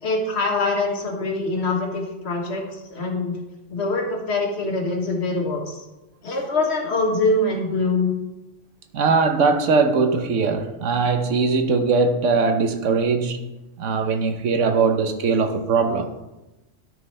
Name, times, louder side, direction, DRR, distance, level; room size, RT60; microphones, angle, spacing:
voice 1, 0.0-3.4 3.7-5.8 6.2-8.2, left 2 dB, 60° left, 1.7 m, -24 dB
voice 2, 8.9-13.4 13.8-16.1, right 4 dB, 80° right, 1.2 m, -20 dB
13.0 x 5.1 x 3.3 m
omnidirectional pair, 1.2 m